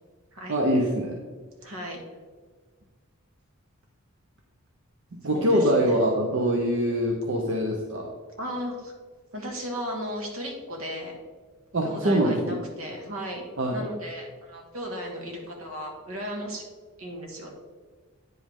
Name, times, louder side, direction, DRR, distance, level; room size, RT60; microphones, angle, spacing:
voice 1, 0.5-1.2 5.2-8.1 11.7-12.6 13.6-13.8, equal, 60° right, 0 dB, 0.8 m, -24 dB
voice 2, 1.6-2.0 5.3-6.0 8.4-8.9 9.3-11.2 11.8-13.4 13.7-16.6 17.0-17.5, equal, 75° right, 0 dB, 1.7 m, -35 dB
9.4 x 5.2 x 3.6 m, 1.5 s
head